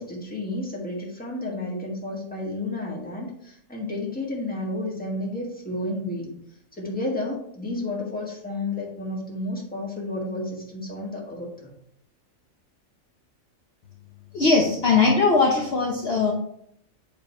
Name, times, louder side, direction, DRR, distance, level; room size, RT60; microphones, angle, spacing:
voice 1, 0.0-6.3 6.7-11.7, left 2 dB, 5° left, -3 dB, 1.5 m, -31 dB
voice 2, 14.3-16.3, left 4 dB, 50° left, -1 dB, 1.0 m, -20 dB
7.1 x 3.4 x 4.3 m, 0.71 s
omnidirectional pair, 1.4 m